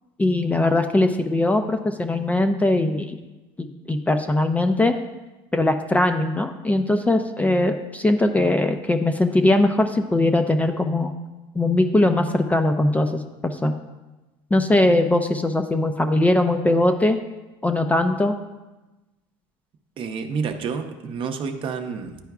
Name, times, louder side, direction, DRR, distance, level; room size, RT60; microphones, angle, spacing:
voice 1, 0.2-3.2 3.6-4.9 5.5-11.1 11.6-13.7 14.5-17.2 17.6-18.3, left 2 dB, 10° left, 6 dB, 0.4 m, -20 dB
voice 2, 20.0-22.2, right 5 dB, 45° right, 6 dB, 0.6 m, -29 dB
10.5 x 4.5 x 2.4 m, 1.1 s
supercardioid pair, 95°, 13 cm